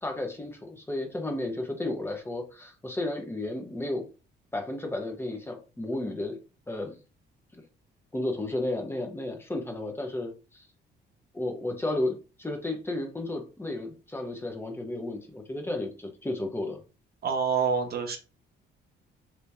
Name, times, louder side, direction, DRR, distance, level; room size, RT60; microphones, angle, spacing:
voice 1, 0.0-4.0 4.5-6.4 6.7-6.9 7.6-7.7 8.1-10.6 11.3-16.8, left 2 dB, 10° left, 3 dB, 1.0 m, -33 dB
voice 2, 17.2-18.2, right 6 dB, 50° right, 4 dB, 0.8 m, -26 dB
3.0 x 2.8 x 3.4 m, 0.33 s
cardioid pair, 90°, 20 cm